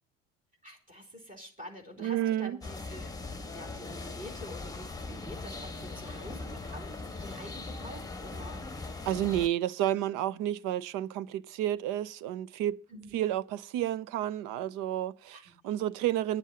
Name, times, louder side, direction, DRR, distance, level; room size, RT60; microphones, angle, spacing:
voice 1, 0.6-3.1 3.5-8.8 12.9-13.2 15.3-15.5, equal, 20° right, 4.8 m, -47 dB
voice 2, 2.0-2.6 9.1-12.8 13.1-16.4, right 12 dB, 60° right, 0.8 m, -31 dB
sound 1, 2.6-9.5, left 3 dB, 10° left, 1.5 m, -40 dB
11.0 x 7.3 x 8.5 m
hypercardioid pair, 65°, 36 cm